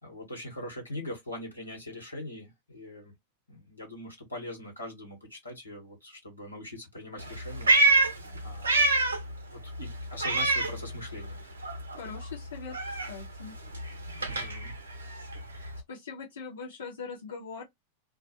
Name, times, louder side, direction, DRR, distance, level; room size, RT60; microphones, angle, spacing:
voice 1, 0.0-3.1 3.5-8.9 9.5-11.4 14.3-14.7, left 1 dB, 85° left, 1.2 m, -42 dB
Meow, 7.2-9.3 9.6-11.4 11.6-15.8, right 2 dB, 70° right, 0.6 m, -27 dB
voice 2, 11.9-13.5 15.9-17.6, left 5 dB, 65° left, 0.8 m, -41 dB
2.3 x 2.1 x 2.7 m
figure-of-eight pair, 90°, 0 cm